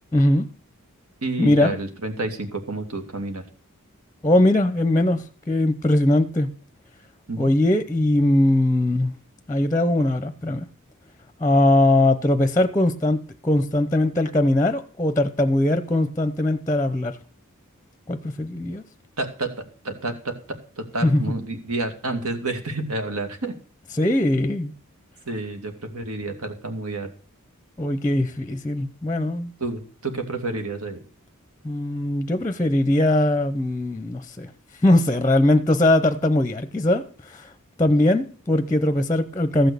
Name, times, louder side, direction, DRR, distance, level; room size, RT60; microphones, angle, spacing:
voice 1, 0.1-0.5 1.4-1.7 4.2-6.5 7.4-9.1 9.5-10.7 11.4-17.2 18.1-18.8 21.0-21.2 23.9-24.7 27.8-29.5 31.6-34.5 34.8-37.5 37.8-39.7, left 1 dB, 15° left, 0.7 m, -20 dB
voice 2, 1.2-3.4 7.3-7.5 19.2-19.5 19.8-20.3 20.8-23.5 25.3-27.1 29.6-31.0, right 2 dB, 75° right, 2.3 m, -29 dB
14.5 x 6.2 x 6.8 m
head